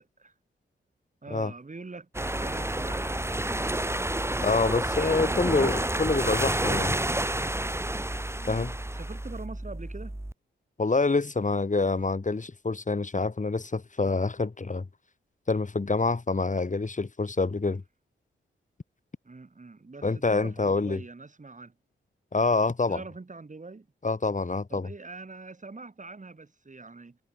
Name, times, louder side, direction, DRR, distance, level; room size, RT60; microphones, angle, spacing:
voice 1, 1.2-4.0 5.0-5.9 8.4-10.2 19.2-21.7 22.9-23.9 24.7-27.2, right 3 dB, 35° right, 7.0 m, -43 dB
sound 1, 2.1-10.3, right 1 dB, 10° right, 3.1 m, -29 dB
voice 2, 4.4-7.0 8.5-8.7 10.8-14.9 15.5-17.8 20.0-21.0 22.3-23.0 24.0-24.9, left 3 dB, 35° left, 5.0 m, -26 dB
cardioid pair, 65°, 21 cm